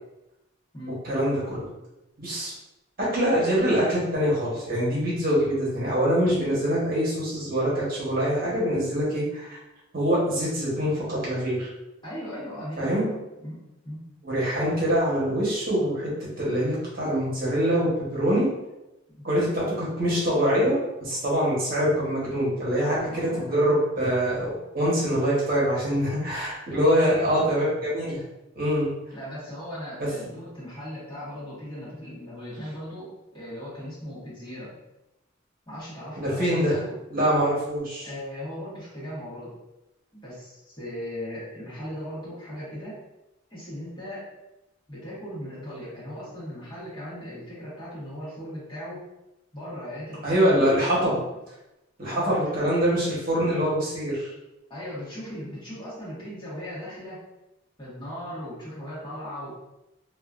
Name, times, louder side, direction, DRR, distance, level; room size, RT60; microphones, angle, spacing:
voice 1, 0.9-1.7 2.2-2.5 3.1-9.6 9.9-11.7 12.8-13.1 14.2-16.1 16.4-18.5 19.2-28.2 28.6-28.9 36.2-36.8 37.1-38.1 50.2-51.2 52.0-54.3, equal, 45° right, -7 dB, 0.9 m, -24 dB
voice 2, 12.0-14.1 19.1-19.3 22.8-23.4 26.7-27.8 29.1-34.7 35.7-37.0 38.0-39.6 40.1-43.0 43.5-44.3 44.9-49.1 49.5-50.8 52.0-52.7 54.7-57.2 57.8-59.6, equal, 25° left, -10 dB, 1.3 m, -38 dB
2.9 x 2.4 x 2.4 m, 0.94 s
head